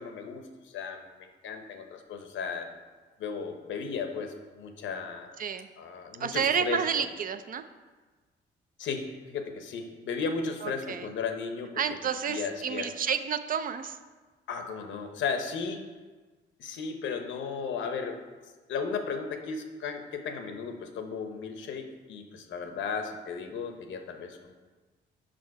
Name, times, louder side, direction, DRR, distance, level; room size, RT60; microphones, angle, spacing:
voice 1, 0.0-2.8 3.2-5.3 5.8-7.1 8.8-12.0 12.3-12.9 14.5-15.8 16.6-18.2 18.7-24.5, left 5 dB, 70° left, 6 dB, 0.8 m, -35 dB
voice 2, 6.2-7.6 10.6-11.1 11.8-14.0, right 7 dB, 45° right, 10 dB, 0.4 m, -30 dB
5.5 x 5.2 x 4.6 m, 1.3 s
cardioid pair, 90°, 20 cm